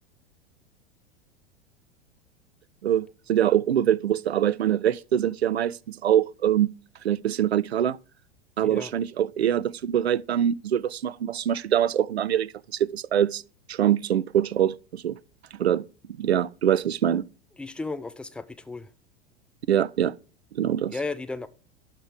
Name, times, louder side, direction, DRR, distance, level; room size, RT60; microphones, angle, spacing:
voice 1, 2.8-6.7 7.0-8.0 8.6-13.4 13.7-15.2 15.5-15.9 16.2-17.3 19.7-20.1 20.5-20.9, right 10 dB, 75° right, 0.5 m, -24 dB
voice 2, 17.6-18.9 20.9-21.5, left 3 dB, 5° left, 0.5 m, -34 dB
12.0 x 4.4 x 4.6 m
figure-of-eight pair, 90°, 32 cm